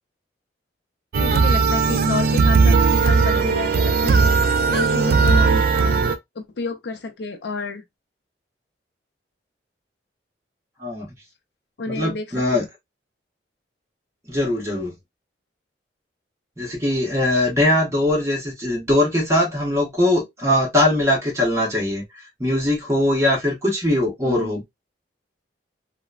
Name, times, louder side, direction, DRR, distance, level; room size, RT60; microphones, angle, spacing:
sound 1, 1.1-6.2, right 4 dB, 55° right, 0.4 m, -17 dB
voice 1, 1.2-4.3 4.7-5.6 6.4-7.8 11.8-12.7 24.2-24.6, left 3 dB, 70° left, 0.5 m, -30 dB
voice 2, 11.9-12.7 14.3-14.9 16.6-22.0 22.4-24.6, left 1 dB, 15° right, 1.1 m, -21 dB
2.9 x 2.1 x 2.3 m
head